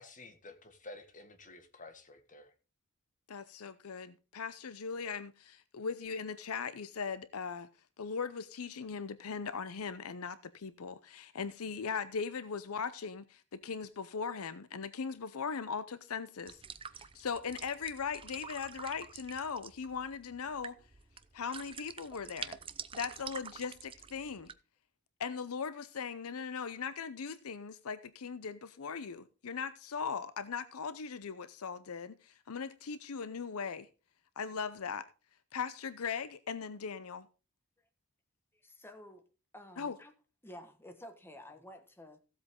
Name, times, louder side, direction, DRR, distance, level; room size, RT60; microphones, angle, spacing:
voice 1, 0.0-2.5, left 2 dB, 35° left, 1.6 m, -51 dB
voice 2, 3.3-7.7 8.0-16.6 16.9-20.8 21.3-22.6 22.9-24.5 25.2-33.9 34.4-35.1 35.5-37.3 39.8-39.9, left 6 dB, 70° left, 0.6 m, -39 dB
sound 1, 16.5-24.5, right 7 dB, 25° right, 0.5 m, -47 dB
voice 3, 38.5-39.3 39.5-40.1 40.4-42.2, left 1 dB, 10° left, 1.4 m, -51 dB
15.5 x 8.0 x 3.6 m
head